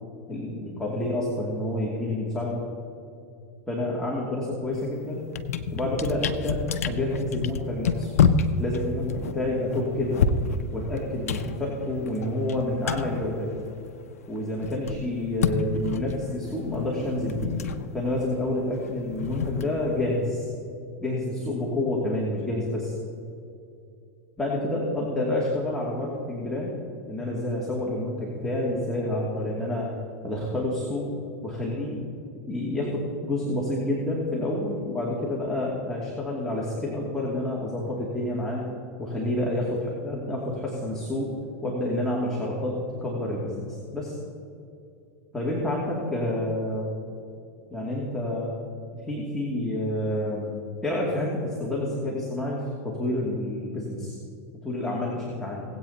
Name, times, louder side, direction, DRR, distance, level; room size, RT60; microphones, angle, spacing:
voice 1, 0.3-2.6 3.7-5.2 5.7-8.1 8.6-10.4 10.7-13.5 14.3-17.5 17.9-20.5 21.0-22.9 24.4-26.7 27.1-29.9 30.2-31.1 31.4-32.0 32.5-38.6 39.0-41.3 41.6-44.2 45.3-46.9 47.7-48.6 49.1-50.6 50.8-54.2 54.6-55.6, left 1 dB, 5° left, -6 dB, 2.6 m, -28 dB
sound 1, 4.7-4.9 5.2-14.1 14.4-20.3, left 5 dB, 85° left, 0.7 m, -29 dB
19.5 x 8.5 x 2.9 m, 2.6 s
hypercardioid pair, 105°, 8 cm